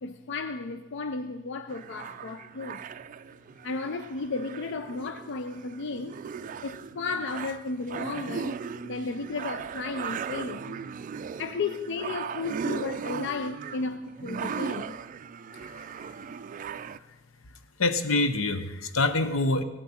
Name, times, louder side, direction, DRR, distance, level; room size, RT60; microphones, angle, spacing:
voice 1, 0.0-2.8 3.6-6.2 6.6-8.6 8.8-10.8 11.4-15.0, left 4 dB, 60° left, 0.4 m, -34 dB
sound 1, 1.7-17.0, right 6 dB, 40° right, 0.3 m, -38 dB
voice 2, 15.5-15.9 17.8-19.6, left 2 dB, 85° left, 0.8 m, -26 dB
16.5 x 12.0 x 4.3 m
head